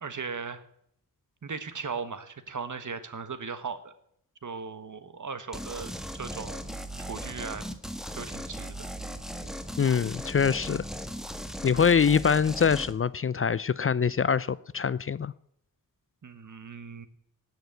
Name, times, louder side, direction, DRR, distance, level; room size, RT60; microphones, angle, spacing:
voice 1, 0.0-0.6 1.4-3.9 4.4-6.7 7.0-7.6 8.1-8.8 16.2-17.1, right 5 dB, 60° right, 1.5 m, -38 dB
sound 1, 5.5-12.9, equal, ahead, 1.5 m, -38 dB
voice 2, 9.8-10.8 11.6-15.3, left 6 dB, 40° left, 0.4 m, -24 dB
17.0 x 6.5 x 9.2 m
cardioid pair, 60°, 35 cm